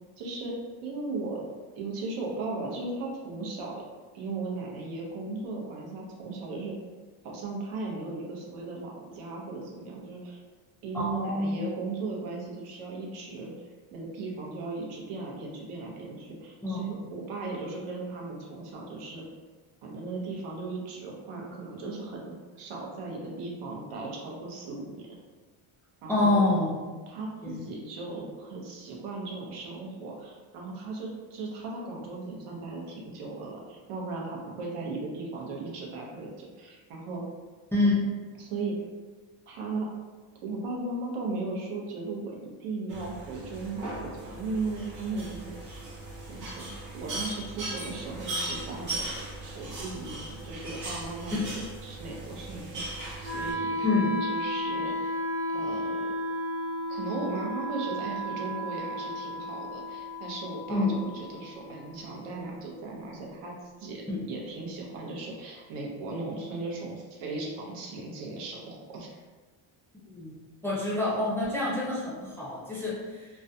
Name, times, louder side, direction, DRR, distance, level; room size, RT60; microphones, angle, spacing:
voice 1, 0.2-0.6 0.8-1.5 1.7-3.8 4.1-6.8 7.2-10.4 10.8-19.2 19.8-25.1 26.0-26.3 27.1-37.2 38.4-38.8 39.5-39.9 40.4-45.6 46.3-55.1 55.5-56.1 56.9-63.5 63.8-64.0 64.3-69.2, right 3 dB, 90° right, -2 dB, 0.7 m, -37 dB
voice 2, 10.9-11.6 16.6-17.0 26.1-26.8 27.4-27.7 37.7-37.9 53.8-54.1 60.7-61.0 64.1-64.2 70.1-70.4 70.6-73.3, left 2 dB, 5° left, -7 dB, 0.4 m, -27 dB
sound 1, 42.9-53.5, right 2 dB, 40° right, 0.6 m, -38 dB
Wind instrument woodwind instrument, 53.2-63.2, equal, 65° right, 0.9 m, -34 dB
2.3 x 2.1 x 2.6 m, 1.4 s
cardioid pair, 135°, 49 cm